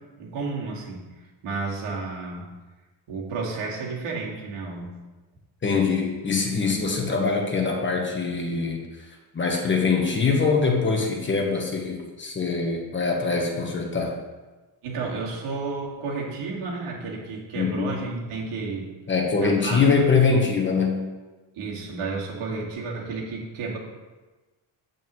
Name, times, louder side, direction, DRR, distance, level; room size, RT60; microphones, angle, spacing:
voice 1, 0.2-2.5 3.1-4.9 9.5-9.6 14.8-18.9 19.4-19.9 21.5-23.8, right 4 dB, 90° right, -3 dB, 2.3 m, -32 dB
voice 2, 5.6-8.8 9.3-14.1 17.5-18.0 19.1-21.0, left 4 dB, 25° left, 1 dB, 1.2 m, -23 dB
9.0 x 8.2 x 3.2 m, 1.2 s
cardioid pair, 165°, 48 cm